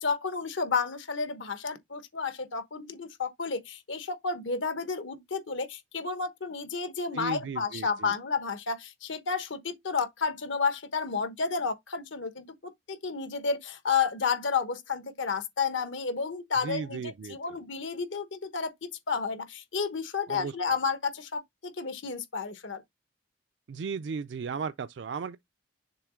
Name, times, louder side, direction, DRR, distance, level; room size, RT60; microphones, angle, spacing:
voice 1, 0.0-22.8, left 5 dB, 85° left, 1.1 m, -31 dB
voice 2, 7.1-8.1 16.6-17.4 20.3-20.5 23.7-25.4, right 5 dB, 70° right, 0.4 m, -35 dB
6.8 x 3.0 x 5.0 m
head